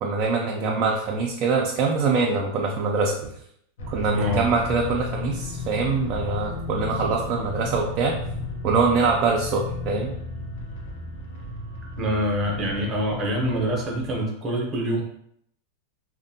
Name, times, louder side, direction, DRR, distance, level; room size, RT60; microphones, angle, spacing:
voice 1, 0.0-3.3 3.9-8.2 8.6-10.1, right 4 dB, 45° right, -1 dB, 0.3 m, -24 dB
voice 2, 0.6-0.9 4.1-4.4 12.0-15.0, equal, 20° right, -2 dB, 0.7 m, -25 dB
sound 1, 3.8-14.1, left 3 dB, 80° left, 0.6 m, -34 dB
2.5 x 2.1 x 2.6 m, 0.71 s
supercardioid pair, 140°, 0 cm